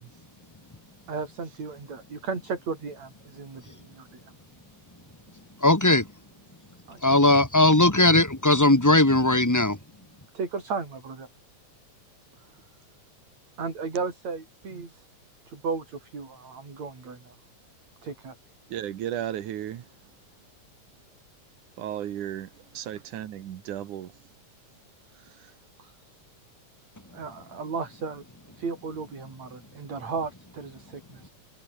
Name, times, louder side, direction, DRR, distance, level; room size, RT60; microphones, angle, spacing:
voice 1, 1.1-4.2 6.9-7.3 10.3-11.3 13.6-15.1 15.5-17.4 18.0-18.3 25.8-26.0 27.1-28.2 28.6-31.3, right 4 dB, 60° right, 6.8 m, -35 dB
voice 2, 5.6-6.1 7.0-9.8, left 2 dB, 5° left, 1.7 m, -19 dB
voice 3, 18.7-19.8 21.8-22.5 22.7-24.1, right 11 dB, 90° right, 3.1 m, -34 dB
omnidirectional pair, 3.4 m